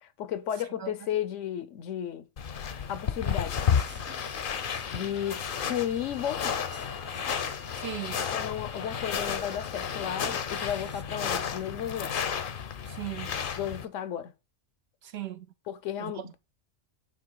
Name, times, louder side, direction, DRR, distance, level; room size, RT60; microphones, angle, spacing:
voice 1, 0.0-2.3 2.9-3.6 4.9-6.7 8.3-12.2 13.6-14.3 15.7-16.4, left 10 dB, 80° left, 1.0 m, -33 dB
sound 1, 2.4-13.8, left 7 dB, 50° left, 0.7 m, -32 dB
sound 2, 3.7-11.0, right 2 dB, 15° right, 0.5 m, -53 dB
sound 3, 4.5-9.7, left 2 dB, 40° right, 1.2 m, -51 dB
voice 2, 7.7-8.3 12.9-13.4 15.0-15.5 16.0-16.4, right 11 dB, 65° right, 0.8 m, -38 dB
8.5 x 3.0 x 4.6 m
omnidirectional pair, 1.3 m